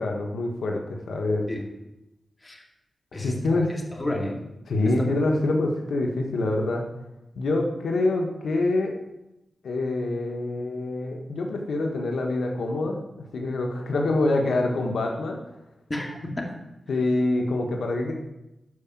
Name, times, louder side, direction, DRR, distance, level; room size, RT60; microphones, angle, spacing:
voice 1, 0.0-1.5 3.1-3.7 4.7-6.8 7.3-8.9 9.6-15.4 16.9-18.1, left 2 dB, 85° left, 2 dB, 1.5 m, -25 dB
voice 2, 3.1-4.4 4.8-5.1 15.9-16.5, left 1 dB, 30° left, 1 dB, 2.4 m, -32 dB
13.0 x 5.0 x 7.5 m, 0.91 s
cardioid pair, 70°, 0 cm